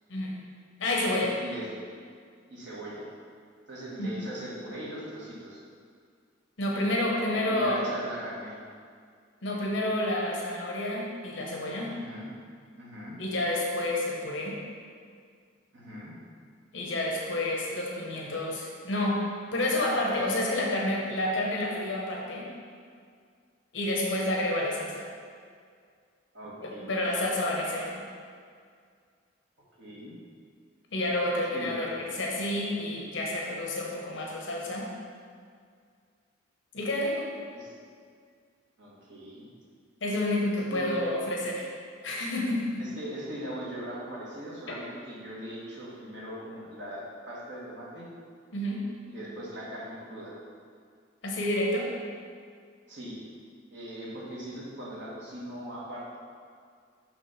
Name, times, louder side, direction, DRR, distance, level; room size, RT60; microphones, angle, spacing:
voice 1, 0.8-1.4 4.0-4.2 6.6-7.9 9.4-12.0 13.2-14.6 16.7-22.5 23.7-25.0 26.6-28.0 30.9-34.9 36.7-37.4 40.0-41.7 42.0-42.8 48.5-49.0 51.2-51.9, left 1 dB, 70° left, -2 dB, 1.0 m, -29 dB
voice 2, 2.5-3.1 3.7-5.6 7.3-8.6 11.9-12.3 12.8-13.2 15.7-16.1 26.3-26.9 29.8-30.1 31.5-31.9 37.5-37.7 38.8-39.5 40.7-41.0 42.8-48.1 49.1-50.4 52.9-53.2 53.7-56.2, right 1 dB, 65° right, -6 dB, 1.5 m, -40 dB
6.1 x 3.4 x 5.6 m, 2.1 s
head